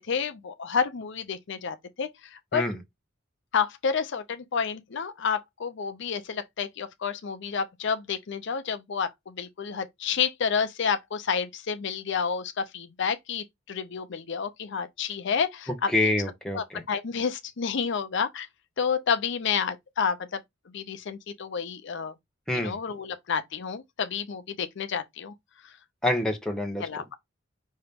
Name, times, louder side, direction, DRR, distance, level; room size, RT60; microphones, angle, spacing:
voice 1, 0.1-2.6 3.5-16.1 16.5-18.5 18.8-20.4 20.7-22.1 22.6-25.3 26.8-27.2, left 6 dB, 65° left, 0.6 m, -30 dB
voice 2, 15.9-16.8 22.5-22.8 26.0-26.8, left 1 dB, 5° left, 0.9 m, -26 dB
5.5 x 2.9 x 3.4 m
head